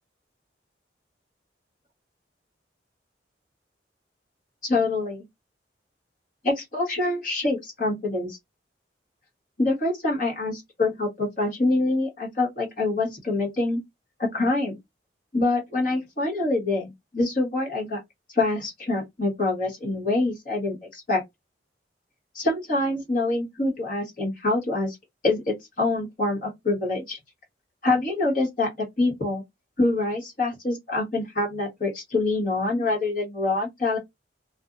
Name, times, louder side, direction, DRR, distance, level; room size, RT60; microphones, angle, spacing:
voice 1, 4.6-5.3 6.4-8.4 9.6-13.8 14.2-14.8 15.3-18.0 18.3-21.2 22.3-25.0 25.2-27.2 27.8-29.4 29.8-34.0, left 2 dB, 50° left, 1.5 m, -25 dB
2.6 x 2.6 x 2.4 m
head